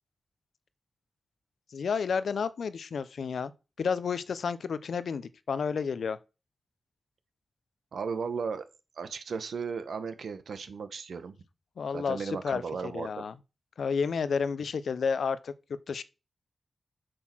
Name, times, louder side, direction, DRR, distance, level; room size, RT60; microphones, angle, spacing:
voice 1, 1.7-3.5 3.8-6.2 11.8-13.3 13.8-15.5 15.9-16.0, left 6 dB, 85° left, 0.7 m, -31 dB
voice 2, 7.9-8.6 9.0-11.3 11.9-13.3, right 5 dB, 90° right, 1.1 m, -35 dB
7.6 x 6.4 x 6.1 m
wide cardioid pair, 165°, 0 cm